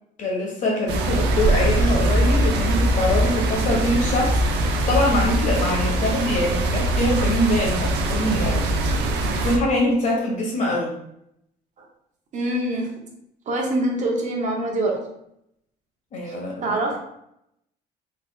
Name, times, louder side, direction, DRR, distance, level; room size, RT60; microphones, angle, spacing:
voice 1, 0.2-4.4 4.9-8.6 9.3-10.9 16.1-16.8, left 1 dB, 45° left, -2 dB, 1.3 m, -23 dB
sound 1, 0.9-9.6, right 1 dB, 80° right, 0.6 m, -22 dB
sound 2, 2.5-9.6, left 1 dB, 5° left, 0.8 m, -41 dB
voice 2, 12.3-13.1 13.5-15.1 16.2-17.0, right 1 dB, 45° right, 0 dB, 0.8 m, -25 dB
3.3 x 3.3 x 2.4 m, 0.77 s
cardioid pair, 110°, 17 cm